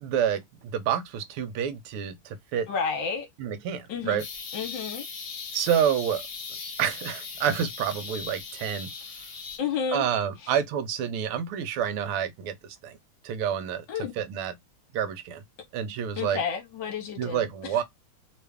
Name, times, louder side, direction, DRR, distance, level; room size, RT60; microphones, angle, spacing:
voice 1, 0.0-2.7 3.4-4.2 5.5-6.2 6.8-8.9 9.9-13.0 13.2-13.9 14.2-14.5 14.9-15.4 15.7-16.4 17.2-17.8, right 9 dB, 85° right, 1.5 m, -28 dB
voice 2, 2.7-3.3 3.9-4.2 4.5-5.0 9.6-10.1 10.4-10.5 13.9-14.1 16.2-17.8, left 6 dB, 65° left, 1.4 m, -31 dB
sound 1, 4.2-9.6, left 5 dB, 45° left, 1.2 m, -39 dB
3.5 x 2.4 x 3.4 m
omnidirectional pair, 2.4 m